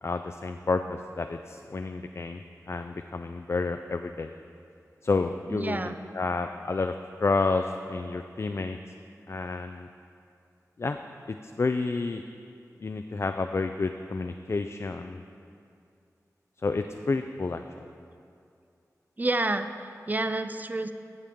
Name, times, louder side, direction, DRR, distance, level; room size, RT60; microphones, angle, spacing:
voice 1, 0.0-4.3 5.0-6.9 7.2-8.8 9.3-9.9 10.8-11.0 11.3-12.2 12.8-15.2 16.6-17.9, left 3 dB, 45° left, 6 dB, 0.3 m, -30 dB
voice 2, 5.5-6.0 19.2-20.9, right 2 dB, 25° right, 9 dB, 0.4 m, -29 dB
15.0 x 6.8 x 3.6 m, 2.4 s
wide cardioid pair, 70°, 6 cm